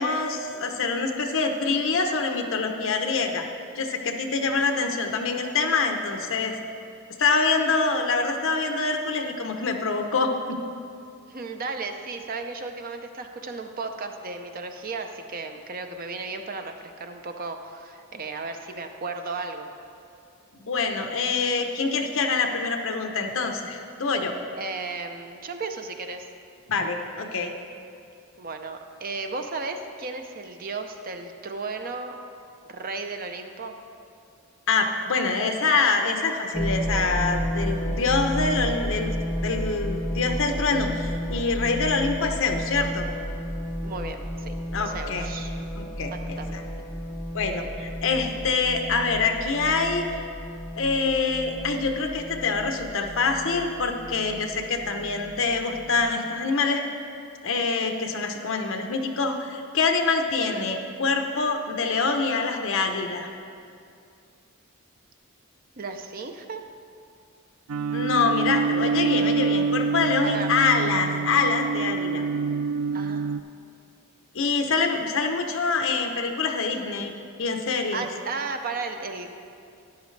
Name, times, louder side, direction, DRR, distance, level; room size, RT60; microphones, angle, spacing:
voice 1, 0.0-3.4 3.8-6.5 7.2-10.6 20.5-24.3 26.7-27.5 34.7-39.1 39.4-43.1 44.7-45.3 45.8-46.6 47.3-50.0 50.8-56.8 57.4-63.3 67.9-72.2 74.3-77.1 77.4-78.0, left 4 dB, 60° left, 4 dB, 0.9 m, -25 dB
voice 2, 11.3-19.7 24.6-26.3 28.4-32.2 32.7-33.8 43.8-44.6 44.9-45.5 46.1-46.7 65.8-66.6 70.2-70.5 72.9-73.3 77.9-79.4, right 4 dB, 40° right, 6 dB, 0.6 m, -34 dB
sound 1, 36.5-56.1, equal, 10° left, 0.7 m, -32 dB
sound 2, 67.7-73.4, right 5 dB, 85° right, 0.4 m, -26 dB
13.0 x 10.5 x 3.3 m, 2.4 s
head